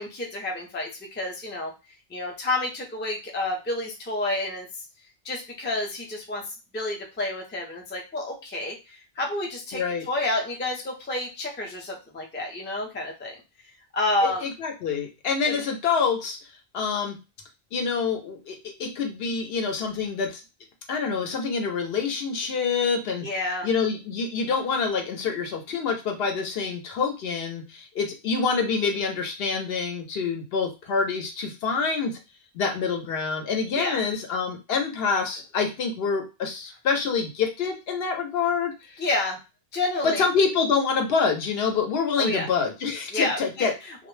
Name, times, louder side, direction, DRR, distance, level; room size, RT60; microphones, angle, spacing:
voice 1, 0.0-1.7 2.1-4.7 5.2-6.4 6.7-9.8 10.1-13.3 13.9-14.5 15.5-15.6 23.1-23.7 33.7-34.0 39.0-39.4 39.7-40.3 42.2-42.5 43.1-44.0, left 2 dB, 15° left, 0 dB, 0.4 m, -29 dB
voice 2, 9.7-10.0 14.2-16.4 16.7-17.2 17.7-20.4 20.9-23.3 23.6-32.2 32.5-39.0 40.0-43.7, left 5 dB, 70° left, 4 dB, 0.8 m, -26 dB
2.2 x 2.0 x 3.1 m, 0.29 s
omnidirectional pair, 1.1 m